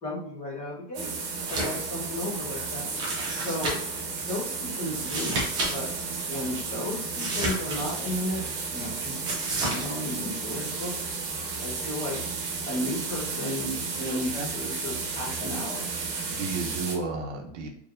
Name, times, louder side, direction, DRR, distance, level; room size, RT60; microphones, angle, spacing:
voice 1, 0.0-1.1 1.5-2.8 3.3-3.8 4.1-5.4 5.7-5.9 6.3-10.9 11.6-12.2 12.7-15.9, left 1 dB, 20° left, -6 dB, 1.3 m, -34 dB
sound 1, 0.9-16.9, right 4 dB, 55° right, 1.2 m, -33 dB
sound 2, 1.4-1.9 2.2-2.3 2.9-4.0 4.9-5.7 6.0-6.1 7.1-8.2 9.2-9.8, right 2 dB, 15° right, 0.4 m, -31 dB
voice 2, 14.1-14.5 16.3-17.7, right 3 dB, 80° right, 2 dB, 1.0 m, -33 dB
4.3 x 3.2 x 2.5 m, 0.67 s
supercardioid pair, 180°, 36 cm